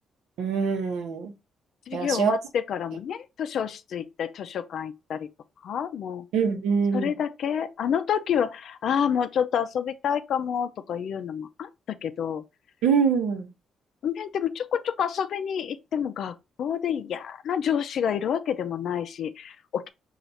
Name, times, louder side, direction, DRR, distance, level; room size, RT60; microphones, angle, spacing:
voice 1, 0.4-1.3 1.9-2.4 6.3-7.1 12.8-13.5, right 6 dB, 85° right, 0.8 m, -24 dB
voice 2, 1.9-5.3 5.6-6.3 6.9-12.4 14.0-19.9, left 8 dB, 65° left, 0.4 m, -28 dB
4.3 x 2.4 x 4.0 m
cardioid pair, 90°, 0 cm